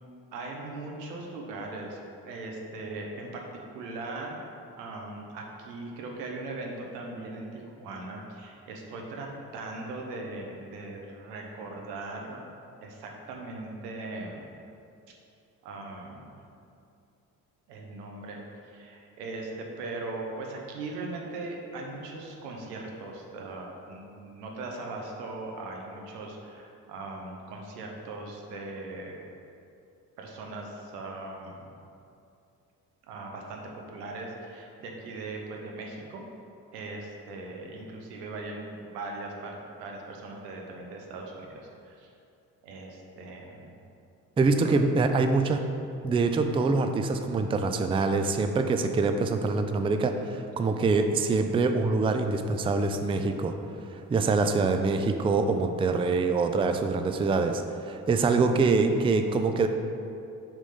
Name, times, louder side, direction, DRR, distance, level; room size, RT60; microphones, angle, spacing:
voice 1, 0.3-3.4 3.7-4.4 4.8-9.3 9.5-12.4 12.8-14.4 15.6-16.4 17.7-29.2 30.2-31.7 33.0-33.6 33.9-36.2 36.7-42.1 42.6-43.7 44.4-44.8, right 2 dB, 90° right, 0 dB, 0.8 m, -39 dB
voice 2, 44.4-45.6 46.0-53.6 53.9-59.7, right 3 dB, 15° right, 6 dB, 0.3 m, -25 dB
5.0 x 3.5 x 5.5 m, 2.6 s
hypercardioid pair, 45°, 46 cm